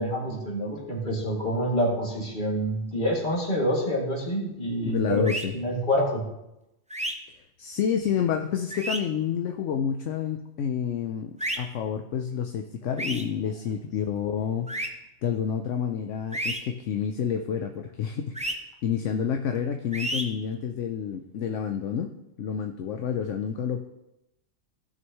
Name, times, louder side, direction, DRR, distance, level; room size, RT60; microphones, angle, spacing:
voice 1, 0.0-5.3 5.5-6.2, equal, 40° left, -4 dB, 2.7 m, -27 dB
voice 2, 4.8-5.5 7.6-14.7 15.2-23.9, left 8 dB, 75° left, 5 dB, 1.0 m, -29 dB
sound 1, 5.2-5.4 6.9-7.1 8.7-9.0 11.4-11.6 13.0-13.2 14.7-14.9 16.3-16.6 18.3-18.5 19.9-20.2, right 1 dB, 5° right, 0.7 m, -30 dB
16.5 x 6.3 x 3.1 m, 0.89 s
omnidirectional pair, 1.3 m